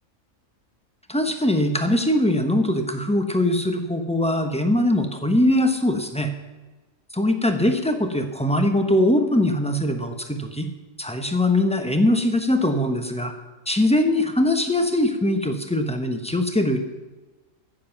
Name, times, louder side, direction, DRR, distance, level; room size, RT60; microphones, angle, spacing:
voice 1, 1.1-6.3 7.1-10.7 11.0-13.3 13.7-16.8, left 1 dB, 5° left, 5 dB, 0.9 m, -21 dB
16.0 x 7.4 x 5.9 m, 1.2 s
omnidirectional pair, 1.4 m